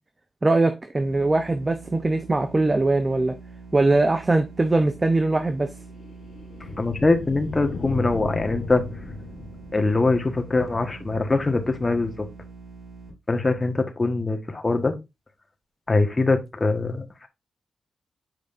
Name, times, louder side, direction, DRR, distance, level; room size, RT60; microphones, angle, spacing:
voice 1, 0.4-3.4 3.7-5.7, right 2 dB, 30° right, 0.7 m, -21 dB
sound 1, 1.0-13.1, right 4 dB, 90° right, 4.5 m, -44 dB
sound 2, 5.0-10.4, left 3 dB, 70° left, 1.1 m, -36 dB
voice 2, 6.8-8.8 9.7-12.3 13.3-15.0 15.9-17.3, left 3 dB, 35° left, 1.4 m, -23 dB
7.9 x 5.1 x 2.6 m
cardioid pair, 50°, 0 cm